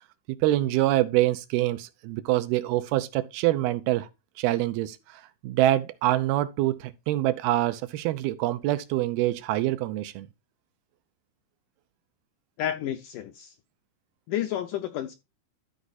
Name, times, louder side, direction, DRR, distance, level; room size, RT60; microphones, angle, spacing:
voice 1, 0.4-4.1 4.4-5.0 5.4-10.3, right 15 dB, 80° right, 2.7 m, -25 dB
voice 2, 12.6-13.5 14.3-15.1, left 11 dB, 80° left, 1.9 m, -30 dB
13.0 x 4.8 x 4.1 m
omnidirectional pair, 4.4 m